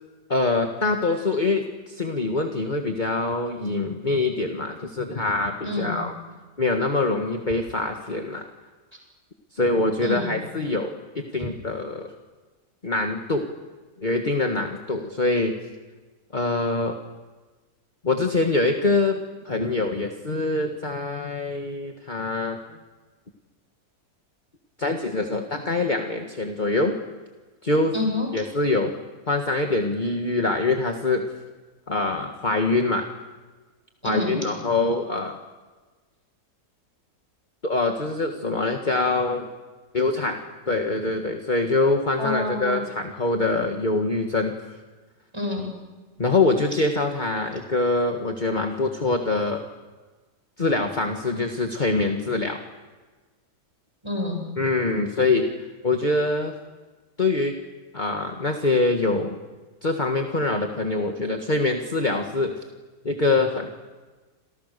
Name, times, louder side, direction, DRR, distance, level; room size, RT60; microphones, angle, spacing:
voice 1, 0.3-6.1 6.6-8.5 9.5-12.1 12.8-13.5 14.0-15.5 16.3-17.0 18.0-22.6 24.8-27.0 27.6-28.0 28.3-29.0 29.3-31.2 31.9-33.1 34.0-35.4 37.6-39.5 39.9-40.4 40.7-44.7 46.2-49.6 50.6-52.6 54.6-55.5 55.8-56.6 57.2-57.5 57.9-59.4 59.8-62.5 63.0-63.7, left 2 dB, 25° left, 4 dB, 1.9 m, -24 dB
voice 2, 5.6-6.0 10.0-10.3 27.9-28.3 34.0-34.4 42.2-42.8 45.3-45.7 54.0-54.4, left 2 dB, 15° right, 0 dB, 8.1 m, -27 dB
30.0 x 28.0 x 6.9 m, 1.3 s
omnidirectional pair, 1.8 m